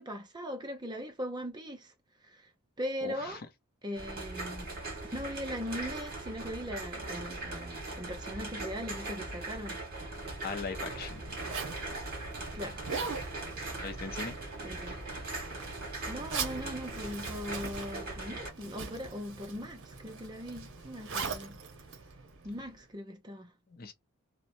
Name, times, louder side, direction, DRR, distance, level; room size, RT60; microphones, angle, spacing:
voice 1, 0.0-1.9 2.2-2.5 2.8-3.4 3.8-4.7 5.1-9.8 12.5-12.9 14.6-15.0 16.1-21.6 22.4-23.5, equal, 20° right, 0.5 m, -40 dB
voice 2, 3.0-3.4 10.4-11.2 13.8-14.4 23.7-23.9, left 4 dB, 45° left, 0.5 m, -39 dB
sound 1, 3.9-18.5, right 2 dB, 45° right, 1.4 m, -40 dB
Zipper (clothing), 10.2-22.8, right 5 dB, 60° right, 0.8 m, -42 dB
2.9 x 2.1 x 2.6 m
head